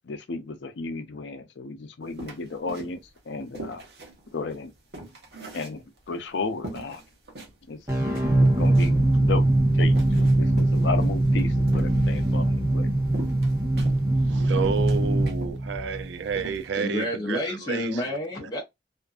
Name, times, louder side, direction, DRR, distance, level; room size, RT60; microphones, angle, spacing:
voice 1, 0.0-3.0 3.3-3.8 4.3-4.7 5.5-7.0 7.7-7.8 8.0-9.5 9.8-12.9, left 3 dB, 90° left, 0.5 m, -33 dB
sound 1, 2.2-3.2 3.5-6.2 6.6-7.5 7.9-8.0 8.1-9.1 9.7-12.3 13.1-14.3 14.6-15.6 15.9-16.0 16.3-16.7, right 2 dB, 65° right, 0.9 m, -41 dB
sound 2, 7.9-16.6, right 1 dB, 20° right, 1.0 m, -22 dB
voice 2, 14.3-17.4 17.7-17.9, right 5 dB, 85° right, 0.4 m, -30 dB
voice 3, 16.8-18.6, left 1 dB, 25° left, 0.7 m, -29 dB
2.5 x 2.4 x 2.3 m
head